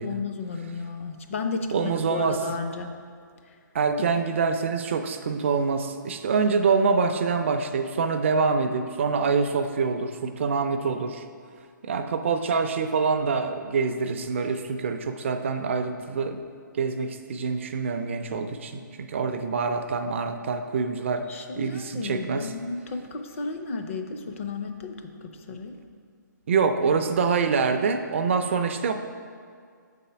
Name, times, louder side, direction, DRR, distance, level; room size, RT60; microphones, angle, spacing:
voice 1, 0.0-2.9 21.3-25.8, left 4 dB, 40° left, 6 dB, 0.5 m, -33 dB
voice 2, 1.7-2.4 3.7-11.2 11.8-16.4 16.7-22.5 26.5-28.9, right 5 dB, 40° right, 7 dB, 0.4 m, -25 dB
6.4 x 4.2 x 5.6 m, 2.1 s
hypercardioid pair, 165°, 11 cm